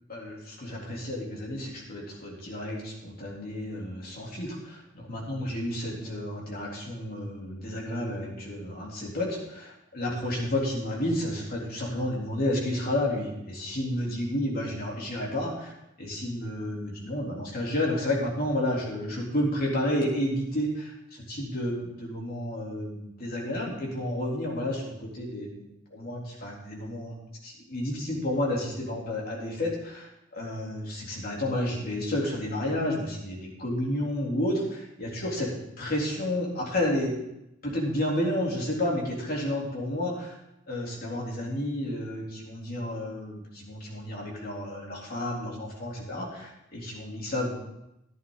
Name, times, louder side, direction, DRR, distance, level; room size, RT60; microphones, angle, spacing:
voice 1, 0.1-15.7 16.0-20.9 21.4-27.1 27.4-35.5 35.8-37.2 37.6-40.4 40.7-47.6, left 1 dB, 50° left, -3 dB, 3.7 m, -31 dB
14.5 x 11.0 x 4.1 m, 0.86 s
head